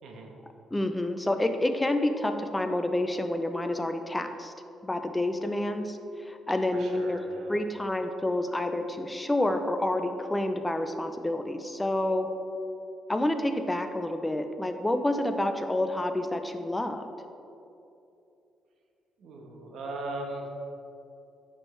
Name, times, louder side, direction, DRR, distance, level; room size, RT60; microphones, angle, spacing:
voice 1, 0.7-4.5 4.8-7.2 7.5-12.3 13.1-17.1, left 1 dB, 15° left, 7 dB, 0.6 m, -28 dB
voice 2, 6.7-7.5 19.2-20.5, right 2 dB, 70° right, 1 dB, 1.2 m, -38 dB
9.1 x 6.1 x 3.3 m, 2.7 s
cardioid pair, 90°, 0 cm